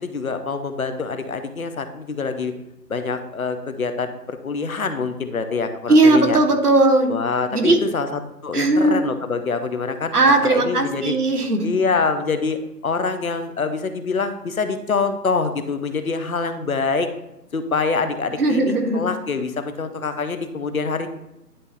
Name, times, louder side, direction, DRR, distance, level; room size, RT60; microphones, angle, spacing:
voice 1, 0.0-2.5 2.9-6.4 7.1-11.2 11.6-17.1 17.5-21.2, left 4 dB, 60° left, 8 dB, 0.8 m, -25 dB
voice 2, 5.9-7.2 7.5-7.8 8.5-9.0 10.1-11.8 18.4-19.0, right 2 dB, 70° right, 4 dB, 1.4 m, -17 dB
10.0 x 3.5 x 4.2 m, 0.87 s
hypercardioid pair, 175°, 48 cm